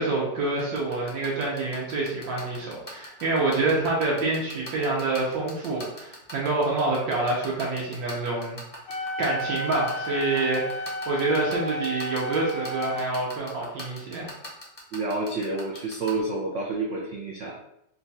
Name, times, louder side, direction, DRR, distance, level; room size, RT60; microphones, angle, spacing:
voice 1, 0.0-8.6 9.0-14.3, right 2 dB, 85° right, -4 dB, 1.5 m, -27 dB
sound 1, 0.6-16.1, left 1 dB, 25° left, 0.6 m, -40 dB
Wind instrument woodwind instrument, 8.9-13.1, equal, 80° left, 1.4 m, -33 dB
voice 2, 14.9-17.6, right 3 dB, 65° right, -2 dB, 0.7 m, -29 dB
3.9 x 2.3 x 4.0 m, 0.79 s
omnidirectional pair, 2.0 m